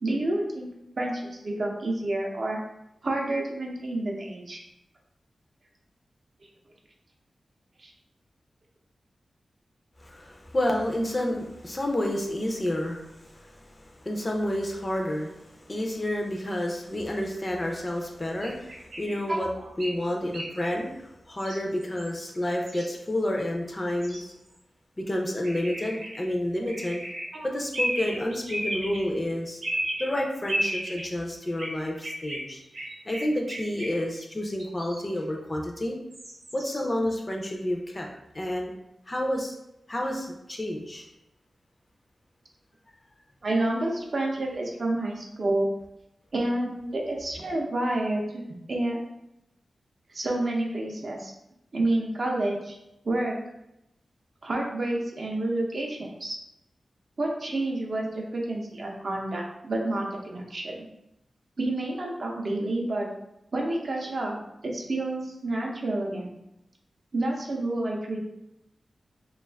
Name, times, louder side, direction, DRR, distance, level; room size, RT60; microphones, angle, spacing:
voice 1, 0.0-0.7 1.0-2.6 3.0-4.6 7.8-7.9 19.3-19.4 27.3-27.5 43.4-45.7 46.3-48.4 48.7-49.0 50.1-51.3 51.7-52.8 53.0-53.4 54.4-56.4 57.2-60.9 61.6-63.1 63.5-64.4 64.6-66.4 67.1-68.2, right 2 dB, 50° right, -1 dB, 0.5 m, -29 dB
voice 2, 10.0-19.5 19.8-24.3 25.0-27.0 27.4-29.6 30.0-32.6 33.1-36.0 36.5-38.1 38.3-38.7 39.1-39.6 39.9-41.1, left 1 dB, 25° left, 1 dB, 0.4 m, -30 dB
sound 1, 18.4-19.2 19.8-19.9 20.3-20.7 21.4-21.6 21.8-22.1 22.7-23.1 24.0-24.2 25.4-26.2 26.7-27.2 27.7-29.0 29.6-30.1 30.5-31.0 31.6-31.7 32.0-34.1 34.6-35.0 36.1-36.8, right 1 dB, 85° right, 0.8 m, -33 dB
2.4 x 2.3 x 3.3 m, 0.85 s
wide cardioid pair, 150°, 0 cm